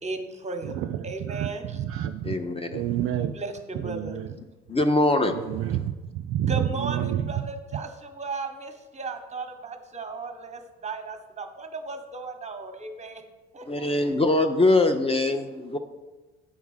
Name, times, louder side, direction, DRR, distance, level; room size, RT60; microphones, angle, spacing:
voice 1, 0.0-0.7 1.0-1.6 3.3-4.2 6.5-13.2 13.5-14.1, right 3 dB, 20° right, 6 dB, 1.2 m, -36 dB
voice 2, 0.6-2.4 2.7-3.3 3.7-4.3 5.3-7.4 7.7-7.8, right 11 dB, 40° right, 7 dB, 0.5 m, -29 dB
voice 3, 2.2-2.8 4.7-5.4 13.7-15.8, left 2 dB, 15° left, 7 dB, 0.6 m, -22 dB
8.6 x 4.6 x 5.6 m, 1.2 s
figure-of-eight pair, 55°, 33 cm